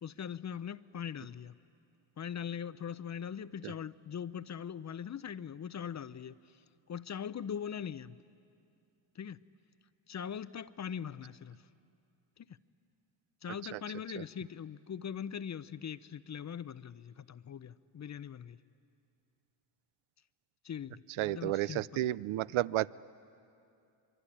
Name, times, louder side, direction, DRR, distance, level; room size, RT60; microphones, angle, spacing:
voice 1, 0.0-1.5 2.2-6.4 6.9-8.2 9.2-9.4 10.1-11.6 12.4-12.5 13.4-18.6 20.6-22.1, left 8 dB, 35° left, 0.6 m, -41 dB
voice 2, 21.2-22.9, right 15 dB, 75° right, 0.6 m, -32 dB
25.0 x 23.5 x 10.0 m
cardioid pair, 90°, 49 cm